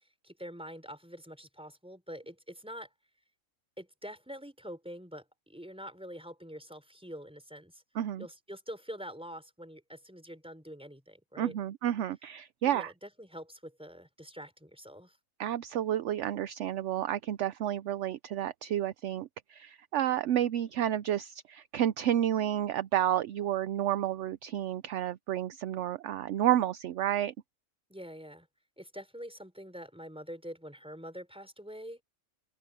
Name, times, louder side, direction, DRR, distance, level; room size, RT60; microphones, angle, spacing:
voice 1, 0.2-2.9 3.8-7.8 8.2-11.6 12.6-15.2 27.9-28.5 28.8-32.0, equal, 5° right, 4.7 m, -45 dB
voice 2, 7.9-8.3 11.4-12.9 15.4-27.3, right 11 dB, 65° right, 0.8 m, -30 dB
open air
omnidirectional pair, 1.4 m